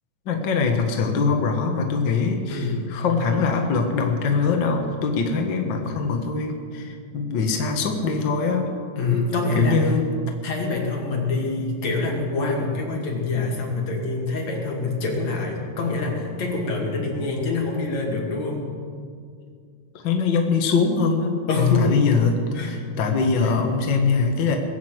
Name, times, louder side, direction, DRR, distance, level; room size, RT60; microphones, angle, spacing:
voice 1, 0.2-8.7 9.5-10.0 19.9-21.4 21.8-22.4 22.6-24.6, left 4 dB, 65° left, 3 dB, 1.1 m, -22 dB
voice 2, 2.5-2.8 9.0-9.9 10.4-18.7 21.5-21.9 22.5-22.7 23.4-23.5, left 3 dB, 50° left, -1 dB, 3.5 m, -25 dB
21.0 x 8.3 x 8.0 m, 2.2 s
omnidirectional pair, 4.3 m